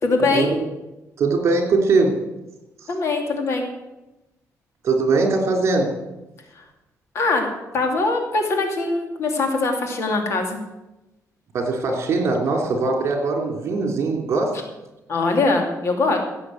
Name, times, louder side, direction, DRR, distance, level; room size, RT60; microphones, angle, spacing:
voice 1, 0.0-0.5 2.9-3.7 6.6-6.7 7.1-10.6 15.1-16.2, left 3 dB, 50° left, 3 dB, 2.8 m, -22 dB
voice 2, 1.2-2.2 4.8-6.0 11.5-14.6, right 3 dB, 50° right, 3 dB, 3.2 m, -21 dB
16.5 x 7.7 x 7.8 m, 1.0 s
cardioid pair, 155°, 6 cm